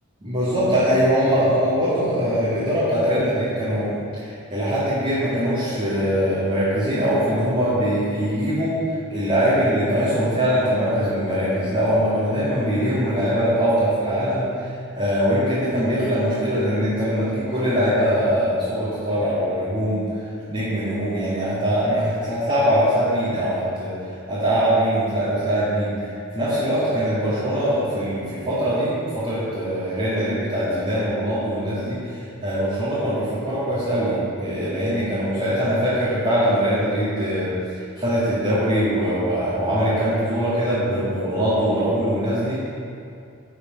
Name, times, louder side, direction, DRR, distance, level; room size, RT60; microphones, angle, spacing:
voice 1, 0.2-8.8 9.1-14.7 15.0-20.0 20.5-23.9 24.3-26.0 26.3-37.5 37.7-42.7, equal, 25° right, -13 dB, 2.2 m, -22 dB
11.5 x 5.1 x 5.3 m, 2.5 s
head